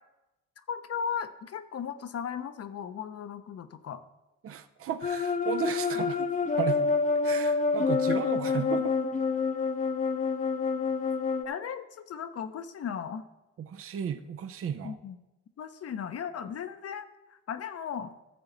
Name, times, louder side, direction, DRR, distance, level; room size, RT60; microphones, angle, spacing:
voice 1, 0.7-4.0 11.4-13.3 14.8-15.2 15.6-18.1, left 7 dB, 55° left, 10 dB, 0.8 m, -36 dB
voice 2, 4.4-7.0 7.2-9.0 13.6-15.0, right 8 dB, 50° right, 10 dB, 0.7 m, -34 dB
sound 1, 5.0-11.4, left 4 dB, 25° left, 0.8 m, -27 dB
14.5 x 7.0 x 4.0 m, 1.0 s
cardioid pair, 90°, 30 cm